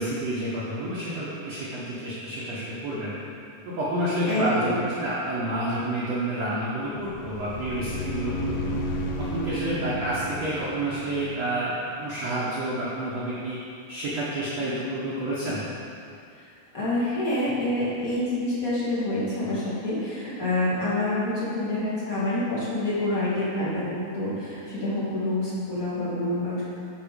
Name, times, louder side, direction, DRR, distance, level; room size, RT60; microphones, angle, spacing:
voice 1, 0.0-3.1 3.6-8.8 9.2-13.6 13.9-15.6, right 1 dB, 75° right, -8 dB, 1.5 m, -29 dB
voice 2, 4.2-4.8 16.7-26.6, left 1 dB, 30° left, -9 dB, 1.7 m, -27 dB
sound 1, 7.0-11.6, equal, 80° left, 2.3 m, -32 dB
9.9 x 4.9 x 5.1 m, 2.5 s
omnidirectional pair, 4.5 m